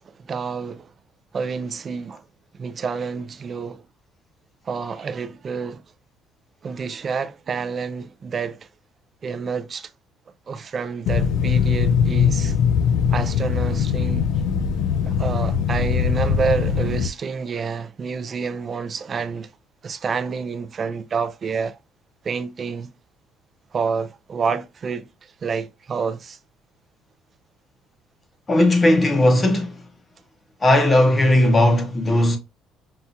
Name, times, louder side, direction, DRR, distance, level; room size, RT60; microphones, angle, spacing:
voice 1, 0.2-0.9 1.3-2.2 2.5-3.8 4.7-5.8 6.6-8.7 9.2-9.9 10.5-12.6 13.1-14.3 15.1-19.5 19.8-21.8 22.2-22.9 23.7-26.4, right 5 dB, 30° right, 0.4 m, -28 dB
sound 1, 11.1-17.1, left 7 dB, 70° left, 0.4 m, -21 dB
voice 2, 28.5-29.8 30.6-32.4, left 1 dB, 20° left, 0.8 m, -17 dB
5.6 x 2.4 x 2.6 m
cardioid pair, 160°, 0 cm